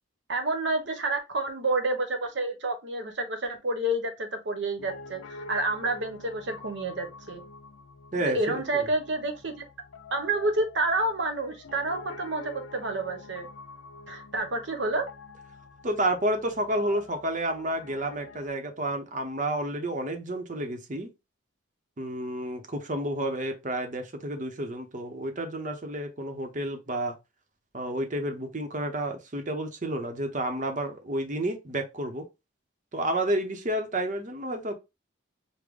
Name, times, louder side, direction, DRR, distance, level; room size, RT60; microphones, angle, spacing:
voice 1, 0.3-7.4 8.2-9.6 10.1-13.5 14.1-15.1, right 2 dB, 60° right, 0.9 m, -29 dB
Piano, 4.8-18.5, left 3 dB, 85° left, 0.5 m, -46 dB
voice 2, 8.1-8.9 15.8-21.1 22.0-27.1 27.7-32.2 32.9-34.7, right 1 dB, 40° right, 0.7 m, -30 dB
5.1 x 2.1 x 3.6 m
head